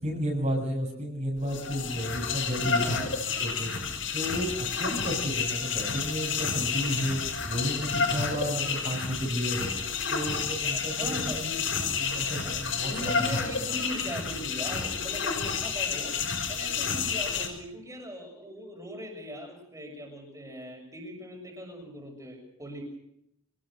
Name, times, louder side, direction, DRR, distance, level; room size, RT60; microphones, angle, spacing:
voice 1, 0.0-3.1 3.4-3.7 4.1-9.7 10.1-13.1, equal, 40° right, 0 dB, 6.7 m, -32 dB
sound 1, 1.4-17.5, left 5 dB, 75° left, 6.2 m, -30 dB
voice 2, 2.7-3.1 10.6-11.5 12.4-16.1 16.5-22.8, equal, 15° right, 1 dB, 7.0 m, -40 dB
26.5 x 20.5 x 6.5 m, 0.77 s
head